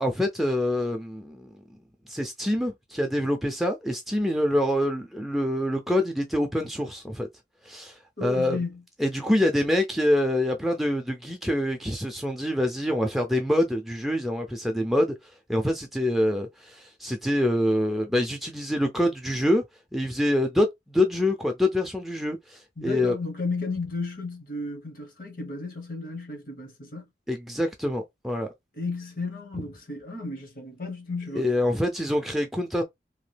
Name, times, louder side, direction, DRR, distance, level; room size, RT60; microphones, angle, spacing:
voice 1, 0.0-1.5 2.1-7.3 7.6-8.6 9.0-19.6 19.9-23.1 27.3-28.5 31.4-32.8, left 1 dB, ahead, 0.3 m, -26 dB
voice 2, 8.2-8.8 22.8-27.1 28.8-31.5, left 3 dB, 50° left, 1.0 m, -33 dB
2.9 x 2.3 x 3.3 m
head